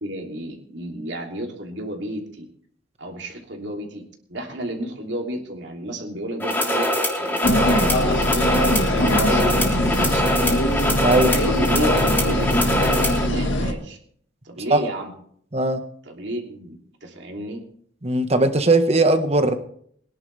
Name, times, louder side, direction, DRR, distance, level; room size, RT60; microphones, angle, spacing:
voice 1, 0.0-2.5 3.0-6.9 7.2-10.6 11.1-11.9 12.2-14.0 14.4-15.1 16.0-17.6, right 1 dB, 65° right, 2 dB, 3.0 m, -31 dB
sound 1, 6.4-13.3, equal, 10° left, 3.3 m, -23 dB
sound 2, 7.4-13.7, left 1 dB, 80° left, 1.8 m, -22 dB
voice 2, 11.0-11.3 14.7-14.8 15.5-15.8 18.0-19.6, right 2 dB, 35° right, 8 dB, 1.4 m, -18 dB
22.5 x 11.0 x 3.4 m, 0.63 s
head